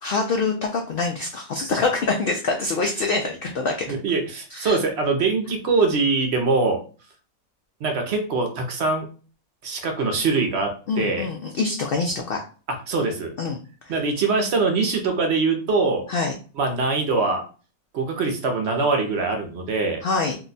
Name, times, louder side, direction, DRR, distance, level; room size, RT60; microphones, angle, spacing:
voice 1, 0.0-3.9 4.5-4.8 10.9-12.4 13.4-13.9 16.1-16.3 20.0-20.4, left 3 dB, 80° left, 2 dB, 0.5 m, -25 dB
voice 2, 3.9-6.8 7.8-9.1 9.6-11.3 12.9-13.3 13.9-16.1 16.6-17.4 17.9-20.0, right 3 dB, 60° right, 3 dB, 0.8 m, -23 dB
2.7 x 2.2 x 3.8 m, 0.38 s
omnidirectional pair, 1.5 m